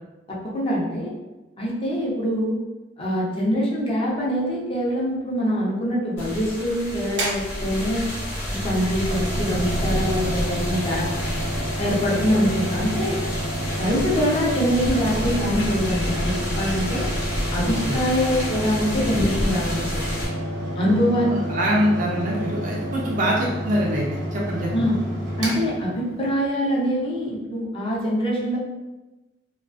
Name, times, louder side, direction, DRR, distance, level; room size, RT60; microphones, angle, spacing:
voice 1, 0.3-1.1 1.6-2.6 3.0-8.1 8.5-11.1 11.8-13.1 13.8-17.1 17.5-20.1 20.7-21.3 24.7-25.0 25.4-28.6, equal, 30° left, -5 dB, 0.6 m, -24 dB
sound 1, 6.2-20.3, equal, 80° left, 0.8 m, -29 dB
Mechanical fan, 7.1-26.5, equal, 80° right, 0.7 m, -30 dB
voice 2, 17.6-18.0 21.2-24.9, equal, 45° right, -3 dB, 0.4 m, -24 dB
2.3 x 2.3 x 2.4 m, 1.1 s
head